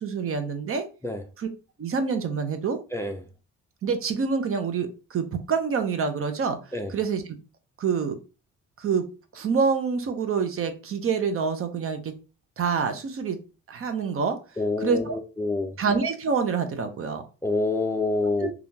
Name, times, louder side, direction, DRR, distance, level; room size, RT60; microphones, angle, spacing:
voice 1, 0.0-0.8 1.4-1.5 1.8-2.8 3.8-6.6 6.9-7.3 7.8-8.2 8.8-9.0 9.3-12.1 12.6-13.4 13.7-14.4 14.8-15.2 15.8-17.2 18.4-18.5, right 5 dB, 45° right, 0.7 m, -26 dB
voice 2, 14.6-15.8 17.4-18.5, left 2 dB, 10° left, 0.4 m, -27 dB
3.4 x 2.4 x 2.8 m
cardioid pair, 90°, 30 cm